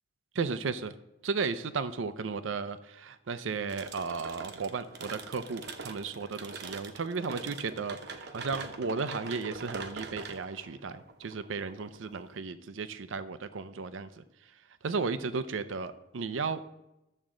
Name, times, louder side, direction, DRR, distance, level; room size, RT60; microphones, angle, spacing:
voice 1, 0.3-0.9 1.2-14.2 14.8-16.7, right 4 dB, 85° right, 13 dB, 0.5 m, -34 dB
sound 1, 3.7-12.4, right 4 dB, 60° right, 0.9 m, -44 dB
12.5 x 7.3 x 3.8 m, 0.92 s
head